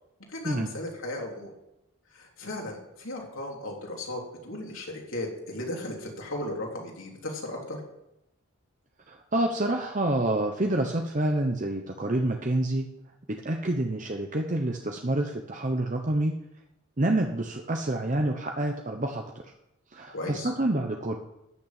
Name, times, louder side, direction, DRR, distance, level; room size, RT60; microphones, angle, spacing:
voice 1, 0.3-1.5 2.1-7.8 20.1-20.5, left 1 dB, 70° left, -1 dB, 3.5 m, -36 dB
voice 2, 9.1-12.9 13.3-16.4 17.0-19.5 19.9-21.2, right 1 dB, 35° right, 3 dB, 0.9 m, -28 dB
13.5 x 6.8 x 9.0 m, 0.88 s
head